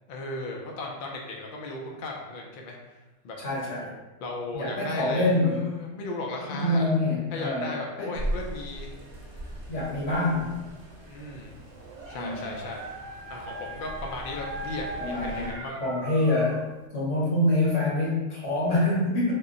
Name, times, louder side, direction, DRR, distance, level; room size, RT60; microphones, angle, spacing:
voice 1, 0.1-3.0 3.2-3.4 4.2-6.9 7.3-8.9 11.1-11.5 12.1-12.8 13.3-15.8, left 2 dB, 55° left, 0 dB, 0.6 m, -36 dB
voice 2, 3.4-3.9 4.5-5.6 6.5-7.7 8.0-8.1 9.7-10.5 12.1-12.5 15.0-15.5 15.8-16.6 16.9-19.3, left 1 dB, 80° left, -7 dB, 1.6 m, -25 dB
sound 1, 8.1-15.5, right 1 dB, 40° right, 0.4 m, -39 dB
Dog, 11.6-16.7, right 2 dB, 85° right, 0.9 m, -39 dB
3.6 x 2.1 x 3.7 m, 1.1 s
omnidirectional pair, 1.3 m